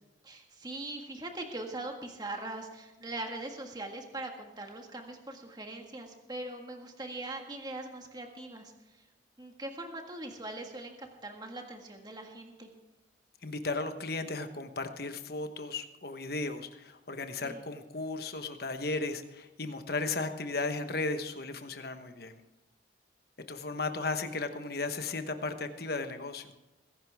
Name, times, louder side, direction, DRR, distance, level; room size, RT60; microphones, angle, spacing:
voice 1, 0.2-9.0 9.4-12.7 17.4-17.6, right 2 dB, 20° right, 3 dB, 1.7 m, -41 dB
voice 2, 13.4-22.4 23.5-26.5, left 3 dB, 55° left, 8 dB, 1.2 m, -35 dB
21.0 x 11.0 x 3.5 m, 1.0 s
head